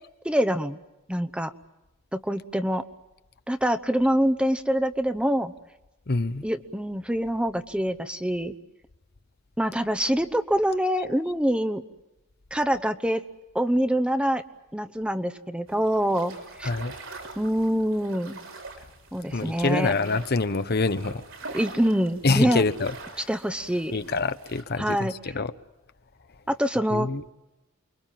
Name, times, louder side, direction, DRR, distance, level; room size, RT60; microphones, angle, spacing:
voice 1, 0.2-0.8 1.1-1.5 2.1-2.8 3.5-5.5 6.4-8.6 9.6-11.8 12.5-13.2 13.5-14.4 14.7-16.7 17.4-18.4 19.1-19.9 21.5-22.6 23.3-23.9 24.8-25.3 26.5-27.1, equal, 5° right, 0.9 m, -25 dB
voice 2, 6.1-6.4 16.6-16.9 19.3-21.2 22.2-22.9 23.9-25.5 26.9-27.3, left 3 dB, 50° left, 0.9 m, -25 dB
sound 1, 15.7-24.6, right 3 dB, 80° right, 6.5 m, -44 dB
29.0 x 23.0 x 7.5 m
head